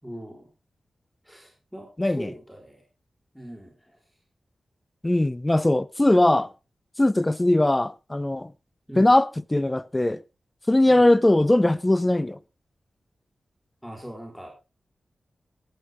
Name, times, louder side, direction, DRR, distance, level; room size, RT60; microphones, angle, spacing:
voice 1, 0.0-0.5 1.2-2.8 3.3-4.0 8.9-9.1 10.9-11.1 13.8-14.5, equal, ahead, 5.0 m, -41 dB
voice 2, 2.0-2.3 5.0-6.5 7.0-8.5 9.0-10.2 10.7-12.4, left 1 dB, 20° left, 0.6 m, -20 dB
18.5 x 9.0 x 3.8 m
wide cardioid pair, 90°, 0 cm